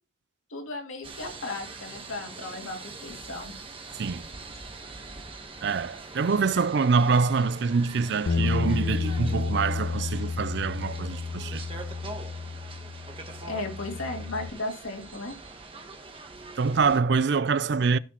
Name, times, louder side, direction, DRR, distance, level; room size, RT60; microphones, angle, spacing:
voice 1, 0.5-3.5 13.5-15.4, left 2 dB, 90° left, 2.5 m, -35 dB
newjersey OC ferriswheel, 1.0-17.0, right 3 dB, 25° right, 1.2 m, -43 dB
voice 2, 5.6-11.6 16.6-18.0, right 5 dB, 55° right, 0.4 m, -25 dB
Bass guitar, 8.3-14.5, left 4 dB, 55° left, 0.4 m, -31 dB
15.5 x 6.1 x 3.0 m
head